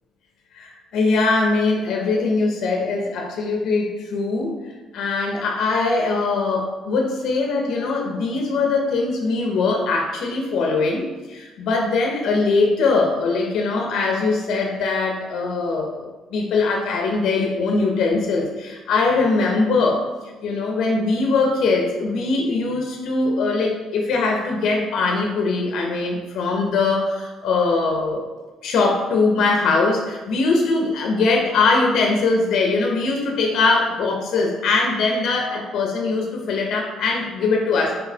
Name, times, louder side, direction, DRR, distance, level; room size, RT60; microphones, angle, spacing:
voice 1, 0.5-4.6 4.9-20.0 20.4-28.3 28.6-37.9, left 3 dB, 60° left, 1 dB, 0.5 m, -21 dB
4.0 x 3.7 x 2.7 m, 1.2 s
cardioid pair, 165°, 0 cm